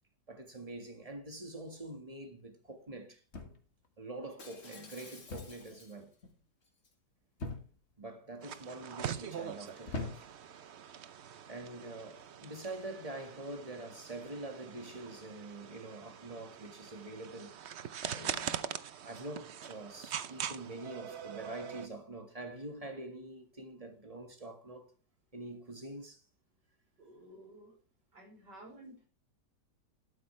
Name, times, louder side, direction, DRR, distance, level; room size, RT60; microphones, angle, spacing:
voice 1, 0.3-3.2 4.0-6.1 8.0-10.3 11.5-24.9 25.3-26.2, right 2 dB, 20° right, 1.7 m, -45 dB
sound 1, 3.3-3.9 5.3-5.7 6.0-6.4 7.4-7.9 8.7-9.0 9.9-10.5 11.5-11.7, left 3 dB, 40° left, 2.0 m, -42 dB
Shatter, 4.4-6.2 6.6-6.9, left 3 dB, 55° left, 2.9 m, -53 dB
sound 2, 8.4-21.9, right 9 dB, 55° right, 0.8 m, -43 dB
voice 2, 27.0-27.8 28.1-29.1, right 1 dB, 85° right, 5.3 m, -53 dB
13.0 x 12.5 x 3.2 m
omnidirectional pair, 1.8 m